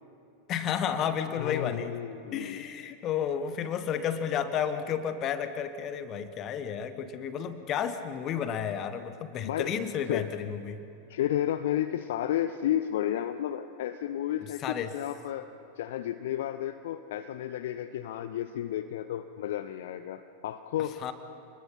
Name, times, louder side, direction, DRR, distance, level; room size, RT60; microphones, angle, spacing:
voice 1, 0.5-1.9 2.3-10.8 14.6-14.9 21.0-21.1, left 8 dB, 35° left, 11 dB, 1.5 m, -32 dB
voice 2, 1.4-2.6 9.4-9.7 10.1-10.3 11.1-15.5 15.8-21.0, left 11 dB, 55° left, 10 dB, 0.7 m, -32 dB
28.0 x 21.0 x 5.7 m, 2.6 s
figure-of-eight pair, 90°, 0 cm